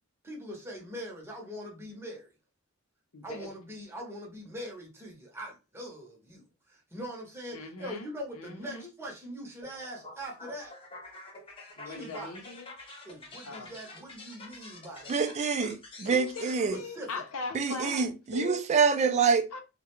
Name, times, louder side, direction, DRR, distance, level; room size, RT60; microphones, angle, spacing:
voice 1, 0.2-2.3 3.2-10.7 11.8-12.3 13.0-15.1 16.7-17.1, equal, 10° right, 0.7 m, -42 dB
voice 2, 3.1-3.5 7.5-8.1 8.4-8.9 11.8-12.7 13.4-13.7 16.0-18.6 19.5-19.6, left 3 dB, 75° left, 0.6 m, -40 dB
sound 1, 9.6-16.6, left 2 dB, 25° left, 0.6 m, -48 dB
voice 3, 15.1-16.8 17.5-19.5, right 5 dB, 30° right, 0.3 m, -26 dB
2.3 x 2.1 x 2.9 m
head